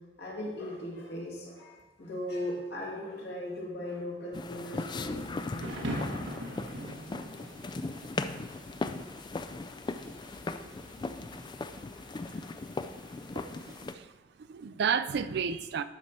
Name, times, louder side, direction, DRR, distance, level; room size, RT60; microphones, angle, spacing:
voice 1, 0.2-5.9, left 1 dB, 65° left, -4 dB, 2.4 m, -38 dB
sound 1, 4.3-13.9, left 3 dB, 25° left, 0.3 m, -38 dB
Thunder / Rain, 4.8-13.8, right 1 dB, 85° right, 1.2 m, -43 dB
voice 2, 13.3-15.8, right 6 dB, 60° right, 13 dB, 0.4 m, -32 dB
12.0 x 4.7 x 4.2 m, 1.1 s
head